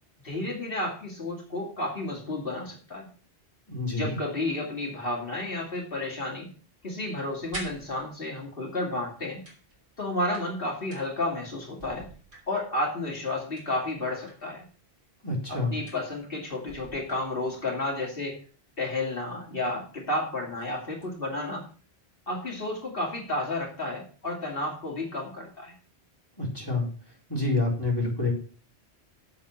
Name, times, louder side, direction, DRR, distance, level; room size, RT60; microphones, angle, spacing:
voice 1, 0.2-3.1 4.0-6.5 6.8-9.4 10.0-12.1 12.5-14.6 15.5-18.4 18.8-21.7 22.3-25.7, left 2 dB, 55° left, -1 dB, 2.9 m, -31 dB
voice 2, 3.7-4.2 15.2-15.8 26.4-26.9 27.3-28.3, left 2 dB, 20° left, -4 dB, 4.5 m, -27 dB
sound 1, 7.4-8.5 9.4-11.4 11.7-12.9 13.6-14.6 15.9-16.4 16.7-17.7 19.3-19.4 19.8-20.0 20.4-21.2, right 1 dB, 70° right, 3.6 m, -46 dB
7.7 x 7.5 x 5.9 m, 0.40 s
omnidirectional pair, 1.1 m